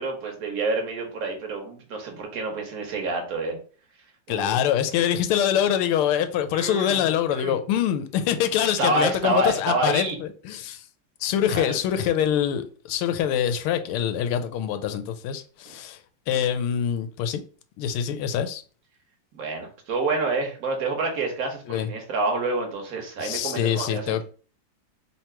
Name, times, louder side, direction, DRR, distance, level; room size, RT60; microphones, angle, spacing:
voice 1, 0.0-3.6 4.3-4.5 6.5-7.0 7.3-7.6 8.6-10.2 11.5-11.7 19.3-24.2, right 2 dB, 50° right, 1.4 m, -28 dB
voice 2, 4.3-10.9 11.2-17.4 17.8-18.6 21.7-21.9 23.2-24.2, left 9 dB, 80° left, 1.4 m, -25 dB
3.7 x 3.0 x 4.3 m
omnidirectional pair, 2.4 m